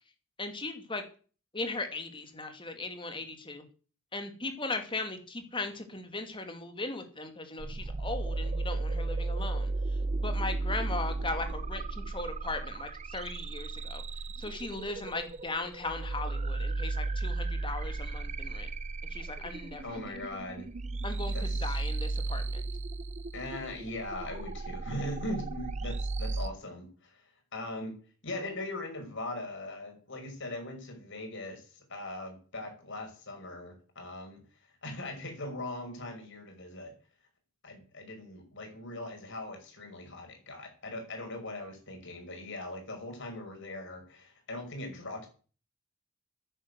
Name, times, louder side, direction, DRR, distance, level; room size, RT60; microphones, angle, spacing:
voice 1, 0.4-1.0 1.5-3.6 4.1-9.7 10.1-14.0 14.4-18.7 19.1-20.0 21.0-22.6, left 3 dB, 25° left, 7 dB, 2.6 m, -38 dB
sound 1, 7.6-26.5, right 3 dB, 30° right, 0.6 m, -35 dB
voice 2, 19.8-20.7 21.3-21.8 23.3-27.2 27.5-28.0 28.2-34.4 34.8-36.9 37.6-45.3, left 1 dB, 60° left, 3 dB, 5.7 m, -40 dB
10.5 x 10.0 x 8.2 m, 0.39 s
head